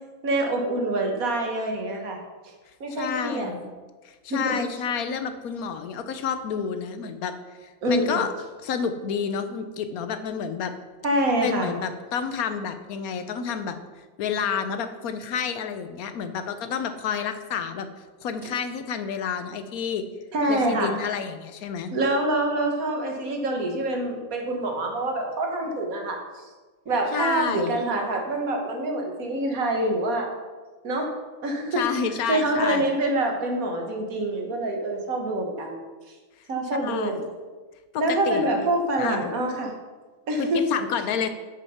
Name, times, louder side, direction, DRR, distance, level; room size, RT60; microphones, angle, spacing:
voice 1, 0.2-2.2 2.8-3.5 4.3-4.5 7.8-8.2 11.0-11.7 20.3-20.9 21.9-26.2 26.9-30.3 30.8-31.1 31.4-31.8 32.3-35.8 36.5-37.2 38.0-39.7 40.3-40.6, right 1 dB, 75° right, 2 dB, 1.8 m, -26 dB
voice 2, 2.9-3.7 4.0-7.4 7.6-8.3 8.6-10.7 11.4-13.8 14.2-17.9 18.2-20.0 20.5-21.9 27.1-27.7 31.7-32.9 36.8-37.3 37.9-38.5 39.0-39.3 40.4-41.3, left 7 dB, 90° left, 9 dB, 1.2 m, -29 dB
7.4 x 6.5 x 5.7 m, 1.3 s
omnidirectional pair, 1.5 m